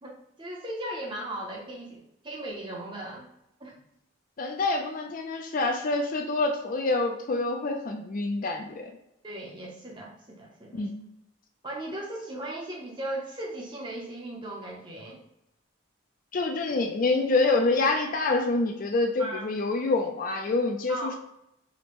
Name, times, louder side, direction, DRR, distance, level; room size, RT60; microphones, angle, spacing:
voice 1, 0.0-3.3 3.6-3.8 9.2-10.9 11.6-15.2 19.2-19.5 20.9-21.2, right 1 dB, 25° right, -1 dB, 0.6 m, -37 dB
voice 2, 4.4-8.9 10.7-11.0 16.3-21.1, left 3 dB, 40° left, 3 dB, 0.3 m, -26 dB
4.9 x 2.0 x 2.9 m, 0.84 s
head